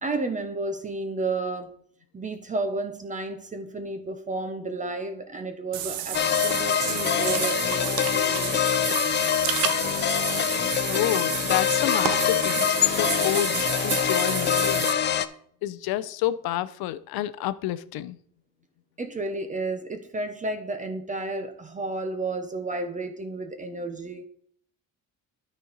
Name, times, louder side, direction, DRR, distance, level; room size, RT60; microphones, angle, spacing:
voice 1, 0.0-1.8 2.1-8.7 19.0-24.3, right 3 dB, 20° right, 0.7 m, -32 dB
Water / Bathtub (filling or washing), 5.7-14.9, right 11 dB, 75° right, 0.8 m, -30 dB
sound 1, 6.1-15.3, left 10 dB, 30° left, 0.4 m, -25 dB
voice 2, 10.9-14.9 15.6-18.2, left 14 dB, 85° left, 0.6 m, -29 dB
12.5 x 4.4 x 3.9 m
cardioid pair, 150°, 36 cm